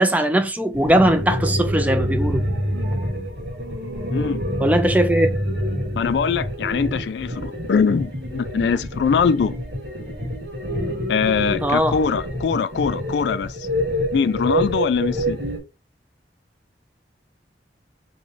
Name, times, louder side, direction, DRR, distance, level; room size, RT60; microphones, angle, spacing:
voice 1, 0.0-2.4 4.6-5.3 11.6-12.0, right 1 dB, 10° right, 0.4 m, -19 dB
sound 1, 0.7-15.6, equal, 75° right, 1.5 m, -26 dB
voice 2, 4.1-4.4 6.0-9.5 11.1-13.7 14.1-15.4, left 6 dB, 75° left, 0.3 m, -22 dB
3.2 x 3.0 x 3.9 m
head